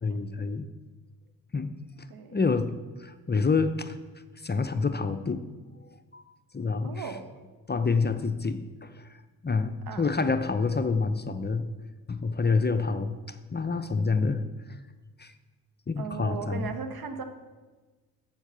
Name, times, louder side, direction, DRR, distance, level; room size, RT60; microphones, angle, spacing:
voice 1, 0.0-0.7 1.5-1.7 2.0-2.1 2.3-2.7 3.0-4.0 4.4-5.4 5.8-6.3 6.5-7.0 7.7-11.7 12.1-14.4 15.2-15.3 15.9-16.7, left 4 dB, 25° left, 9 dB, 0.7 m, -28 dB
voice 2, 6.8-7.3 9.9-10.1 16.0-17.2, right 6 dB, 55° right, 8 dB, 1.2 m, -37 dB
7.4 x 7.3 x 6.9 m, 1.3 s
hypercardioid pair, 45°, 43 cm